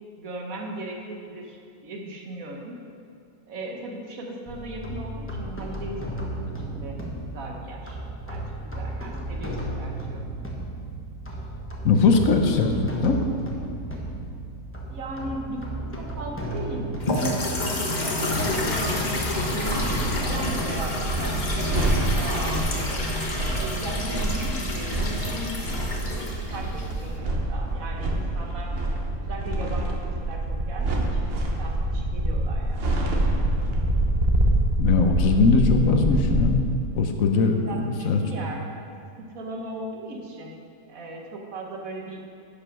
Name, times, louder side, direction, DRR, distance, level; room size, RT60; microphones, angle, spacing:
voice 1, 0.2-2.8 3.5-7.0 7.3-8.0 8.3-10.2 14.9-15.6 16.0-16.9 17.3-19.8 20.2-21.9 22.2-23.1 23.6-25.7 26.0-28.7 29.2-32.9 37.6-38.7 39.2-40.6 40.9-42.2, right 2 dB, 65° right, 0 dB, 1.4 m, -37 dB
sound 1, 4.5-21.7, right 1 dB, 10° left, 1.0 m, -34 dB
voice 2, 11.8-12.7 13.0-13.2 34.8-36.7 37.0-37.7 38.1-38.2, left 4 dB, 65° left, 4 dB, 1.2 m, -20 dB
sound 2, 17.0-27.2, left 2 dB, 35° left, 1.0 m, -29 dB
sound 3, 19.7-36.4, right 1 dB, 45° right, 1.1 m, -26 dB
10.5 x 5.2 x 6.1 m, 2.4 s
omnidirectional pair, 1.6 m